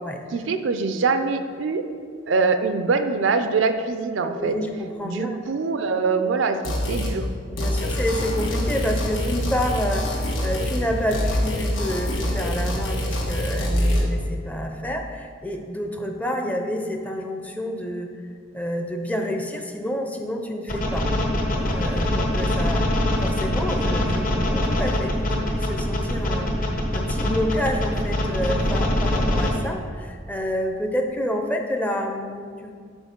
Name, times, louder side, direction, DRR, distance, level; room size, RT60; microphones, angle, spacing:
voice 1, 0.3-1.8 2.3-4.6 5.0-6.6 6.9-7.3, right 4 dB, 75° right, 8 dB, 0.5 m, -23 dB
voice 2, 4.2-5.4 7.5-18.1 18.5-21.1 21.5-26.5 26.9-32.7, equal, 10° left, 3 dB, 0.5 m, -29 dB
sound 1, 6.6-7.2 7.6-10.9 11.1-14.0, equal, 85° left, 1.3 m, -25 dB
sound 2, 7.9-13.4, left 2 dB, 65° left, 0.6 m, -38 dB
sound 3, 20.7-29.5, left 1 dB, 45° left, 1.0 m, -23 dB
6.2 x 4.9 x 5.2 m, 2.1 s
head